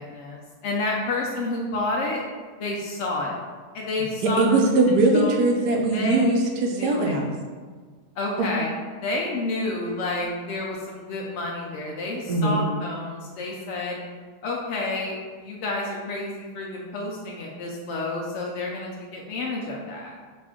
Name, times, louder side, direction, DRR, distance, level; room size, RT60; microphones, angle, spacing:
voice 1, 0.0-2.2 2.6-3.3 3.7-4.5 4.9-5.3 5.9-6.4 6.7-7.1 8.2-8.7 9.0-14.0 14.4-20.2, left 2 dB, 75° left, -2 dB, 0.6 m, -30 dB
voice 2, 4.2-7.3 8.4-8.5 12.3-12.6, right 2 dB, 75° right, 1 dB, 1.1 m, -21 dB
5.0 x 2.5 x 3.6 m, 1.5 s
omnidirectional pair, 1.8 m